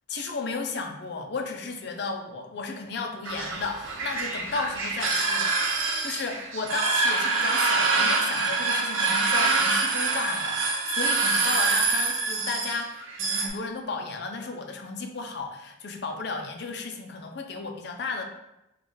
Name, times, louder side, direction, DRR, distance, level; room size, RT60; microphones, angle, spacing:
voice 1, 0.1-18.2, left 4 dB, 55° left, 4 dB, 0.5 m, -34 dB
sound 1, 3.2-13.5, right 3 dB, 90° right, 0.7 m, -25 dB
3.8 x 2.4 x 3.8 m, 0.89 s
head